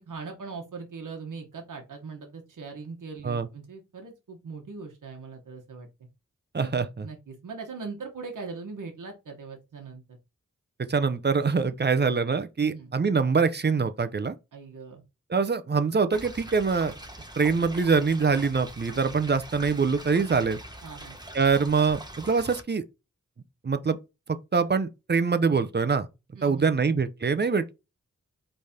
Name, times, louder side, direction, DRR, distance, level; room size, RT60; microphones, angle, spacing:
voice 1, 0.0-5.9 6.6-6.7 7.0-10.2 12.6-12.9 14.5-15.0 20.8-21.2 26.3-26.8, right 4 dB, 90° right, 1.0 m, -40 dB
voice 2, 6.5-7.1 10.9-14.3 15.3-16.9 17.4-20.6 21.3-22.8 23.6-24.0 24.5-26.1 26.4-27.7, right 5 dB, 35° right, 0.5 m, -24 dB
sound 1, 16.1-22.6, right 1 dB, 15° right, 0.9 m, -43 dB
4.0 x 3.3 x 3.5 m
cardioid pair, 50°, 31 cm